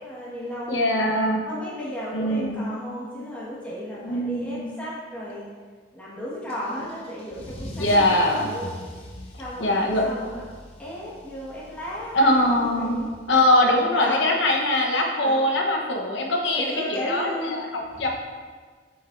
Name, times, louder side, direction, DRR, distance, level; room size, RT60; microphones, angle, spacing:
voice 1, 0.0-1.1 1.5-5.5 5.9-8.7 9.4-10.4 10.8-13.1 13.9-14.2 15.2-15.3 16.5-17.6 17.9-18.1, equal, 5° left, -9 dB, 1.5 m, -34 dB
voice 2, 0.7-1.4 2.1-2.6 4.0-4.7 7.8-8.5 9.6-10.0 12.1-13.0 13.3-17.7 18.0-18.1, left 1 dB, 75° left, 1 dB, 1.1 m, -22 dB
Car / Engine starting / Accelerating revving vroom, 6.5-13.7, equal, 30° left, 0.9 m, -42 dB
8.5 x 6.1 x 2.6 m, 1.5 s
head